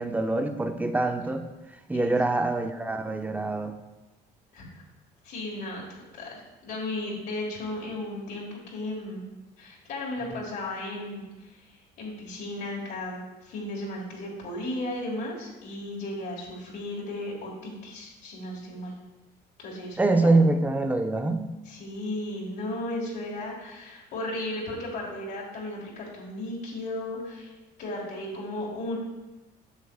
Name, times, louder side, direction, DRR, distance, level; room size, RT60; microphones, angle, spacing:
voice 1, 0.0-1.5 1.9-3.8 20.0-21.5, right 2 dB, 10° right, 6 dB, 0.5 m, -24 dB
voice 2, 5.2-5.9 6.1-9.2 9.6-18.9 19.6-20.4 21.7-27.5 27.8-29.0, left 1 dB, 80° left, -4 dB, 1.7 m, -35 dB
8.1 x 6.5 x 2.3 m, 1.1 s
cardioid pair, 110°, 17 cm